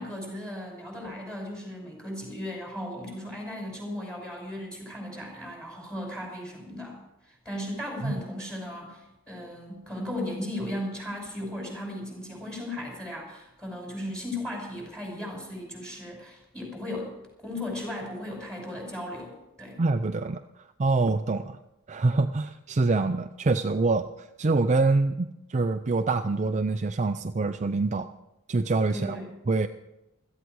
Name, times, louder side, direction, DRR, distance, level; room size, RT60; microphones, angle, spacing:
voice 1, 0.0-19.8 28.9-29.3, left 1 dB, 5° left, 0 dB, 5.6 m, -36 dB
voice 2, 19.8-20.4 20.8-21.6 21.9-24.1 24.4-28.1 28.5-29.2 29.5-29.7, right 3 dB, 30° right, 7 dB, 0.5 m, -25 dB
16.5 x 14.0 x 4.7 m, 0.92 s
head